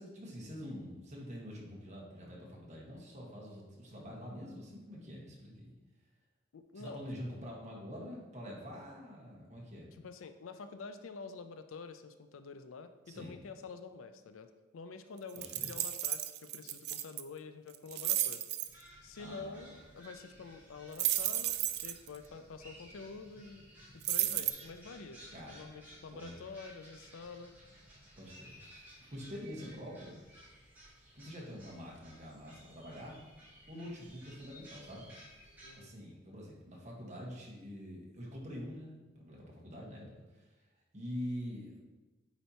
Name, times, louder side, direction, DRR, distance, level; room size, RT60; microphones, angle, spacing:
voice 1, 0.0-5.7 6.7-10.0 13.1-13.4 15.3-15.7 19.2-19.7 25.3-25.8 26.1-26.3 28.2-28.7 29.1-30.2 31.1-33.2 33.7-35.1 35.8-40.5 40.9-41.8, equal, 35° right, -3 dB, 1.4 m, -46 dB
voice 2, 6.5-7.0 10.0-18.4 19.0-23.6 24.1-25.2 25.5-27.5 35.6-35.9, left 4 dB, 80° left, 9 dB, 0.5 m, -48 dB
sound 1, 15.4-17.2 17.7-18.7 21.0-22.1 24.0-24.5, right 13 dB, 55° right, 0.3 m, -33 dB
sound 2, 18.6-35.8, equal, 10° right, 1.8 m, -57 dB
8.8 x 4.3 x 2.9 m, 1.2 s
head